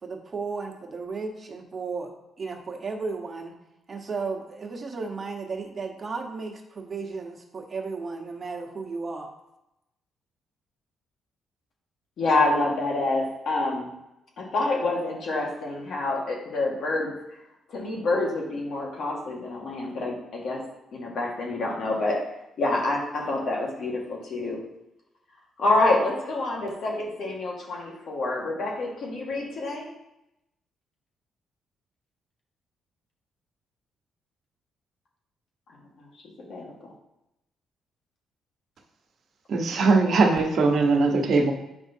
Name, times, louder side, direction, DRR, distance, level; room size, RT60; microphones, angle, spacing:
voice 1, 0.0-3.5 3.9-9.3, right 4 dB, 35° right, 1 dB, 1.1 m, -34 dB
voice 2, 12.2-13.9 14.4-17.1 17.7-20.6 20.9-22.2 22.6-24.6 25.6-29.9 36.5-36.7, left 2 dB, 65° left, -1 dB, 1.6 m, -27 dB
voice 3, 39.5-41.5, right 3 dB, 60° right, 2 dB, 1.1 m, -20 dB
7.6 x 5.2 x 2.7 m, 0.89 s
cardioid pair, 90°, 0 cm